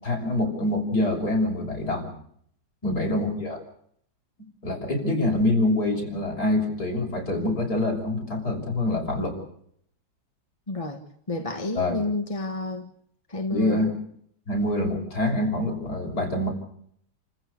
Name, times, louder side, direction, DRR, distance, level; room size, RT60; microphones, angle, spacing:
voice 1, 0.0-2.1 2.8-3.6 4.6-9.4 11.7-11.9 13.5-14.0 14.5-16.5, left 1 dB, 60° left, 1 dB, 6.8 m, -25 dB
voice 2, 10.7-12.9 13.3-13.8, left 2 dB, 20° left, 5 dB, 1.4 m, -30 dB
29.5 x 15.0 x 8.3 m, 0.67 s
omnidirectional pair, 2.0 m